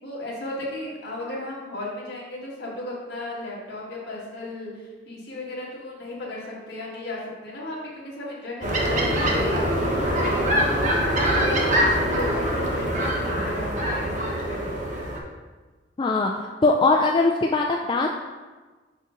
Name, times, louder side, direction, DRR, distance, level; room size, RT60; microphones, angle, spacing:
voice 1, 0.0-15.0, left 2 dB, 60° left, -4 dB, 1.8 m, -35 dB
sound 1, 8.6-15.2, equal, 40° right, 1.0 m, -23 dB
voice 2, 16.0-16.3 16.6-18.1, left 3 dB, 25° left, 0 dB, 0.3 m, -20 dB
6.1 x 5.3 x 3.8 m, 1.3 s
head